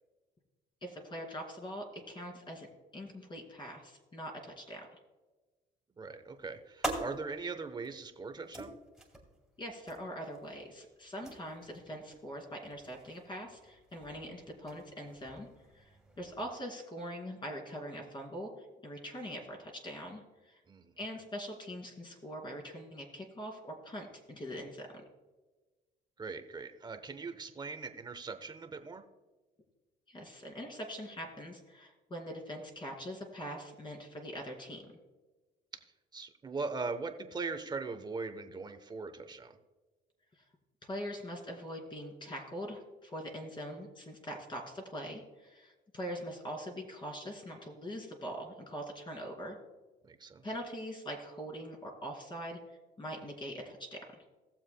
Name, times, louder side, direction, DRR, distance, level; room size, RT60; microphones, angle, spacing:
voice 1, 0.8-2.7 2.9-4.9 9.6-15.5 15.7-15.9 16.2-18.5 18.8-20.6 21.0-24.9 30.1-34.8 40.8-49.6 50.4-52.6 53.0-54.0, equal, 30° left, 1 dB, 2.6 m, -42 dB
voice 2, 6.0-8.7 20.7-20.9 26.2-29.0 36.1-39.5 50.1-50.4, right 4 dB, 25° right, 8 dB, 0.9 m, -40 dB
sound 1, 6.1-16.5, right 1 dB, ahead, 2.5 m, -46 dB
18.5 x 7.3 x 2.2 m, 1.2 s
cardioid pair, 110°, 17 cm